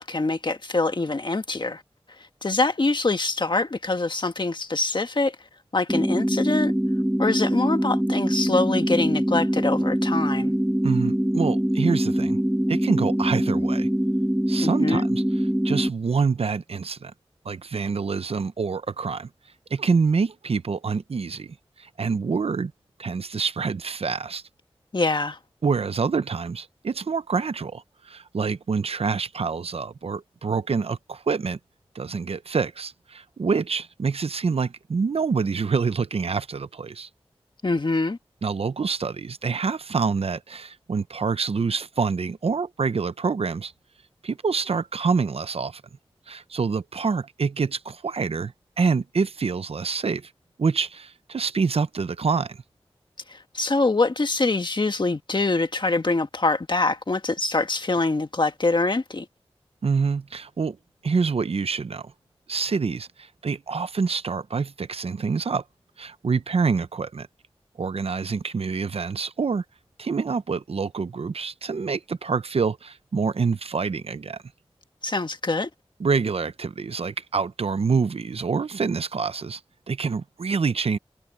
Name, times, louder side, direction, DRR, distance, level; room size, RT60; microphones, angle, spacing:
voice 1, 0.0-1.8 2.4-5.3 5.7-6.7 7.2-10.5 14.6-15.1 24.9-25.4 37.6-38.2 53.3-59.3 75.0-75.7, left 3 dB, 50° left, 1.6 m, -24 dB
sound 1, 5.9-15.9, equal, 10° right, 1.8 m, -23 dB
voice 2, 10.8-12.4 12.7-13.9 14.5-15.2 15.6-17.1 17.4-19.3 19.7-22.7 23.0-24.4 25.6-31.6 31.9-37.1 38.4-43.7 44.2-45.8 46.3-50.3 50.6-52.6 59.8-60.8 61.0-62.1 62.5-65.6 66.0-67.3 67.8-69.6 70.0-74.4 76.0-79.6 79.9-81.0, right 5 dB, 75° right, 0.8 m, -26 dB
cardioid pair, 50°, 10 cm